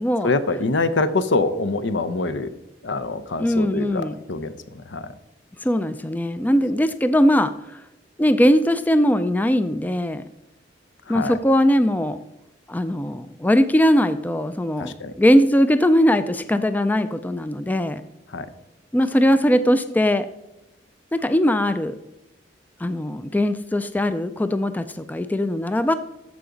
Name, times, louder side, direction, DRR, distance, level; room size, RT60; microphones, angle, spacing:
voice 1, 0.2-2.6 2.8-5.1 11.1-11.4 14.8-15.1 18.3-18.5, left 3 dB, 75° left, 11 dB, 0.7 m, -25 dB
voice 2, 3.4-4.2 5.6-7.8 8.2-10.2 11.1-12.2 12.7-18.0 18.9-20.3 21.1-21.9 22.8-25.9, equal, 10° left, 11 dB, 0.3 m, -20 dB
13.5 x 4.9 x 3.8 m, 0.91 s
head